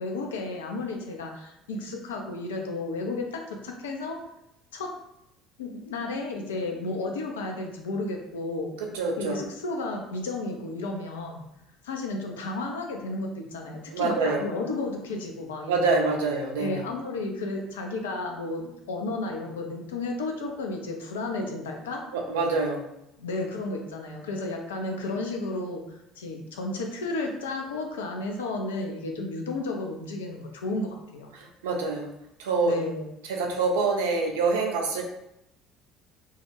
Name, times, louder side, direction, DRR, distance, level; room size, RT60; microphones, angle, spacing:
voice 1, 0.0-4.2 4.7-4.9 5.6-8.8 9.2-11.4 11.8-16.1 16.6-22.1 23.2-31.3 32.6-33.1, left 2 dB, 75° left, 2 dB, 0.4 m, -33 dB
voice 2, 8.9-9.4 13.9-14.4 15.7-16.8 22.1-22.8 31.3-32.1 32.4-32.7 33.3-35.0, right 3 dB, 70° right, 1 dB, 0.4 m, -26 dB
2.2 x 2.1 x 2.9 m, 0.83 s
figure-of-eight pair, 60°, 0 cm